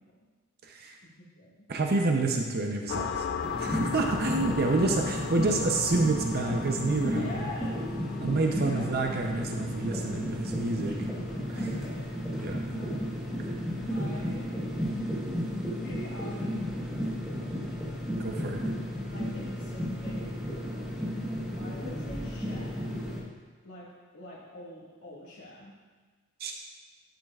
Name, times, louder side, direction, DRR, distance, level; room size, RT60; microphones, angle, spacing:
voice 1, 0.6-1.0 1.7-3.1 3.6-7.2 8.2-11.0 11.5-11.6 12.4-12.6 18.2-18.6 26.4-26.5, right 3 dB, 45° right, 2 dB, 0.7 m, -28 dB
sound 1, 2.9-12.1, left 7 dB, 55° left, 0.4 m, -38 dB
sound 2, 3.4-23.2, equal, 5° right, 1.3 m, -33 dB
voice 2, 7.1-8.0 8.5-8.9 10.8-11.0 11.5-12.1 12.4-13.2 13.9-15.0 15.7-18.1 19.1-21.0 21.5-22.9 23.6-23.9 24.1-25.7, left 1 dB, 90° left, -9 dB, 2.0 m, -44 dB
11.5 x 8.1 x 2.4 m, 1.4 s
head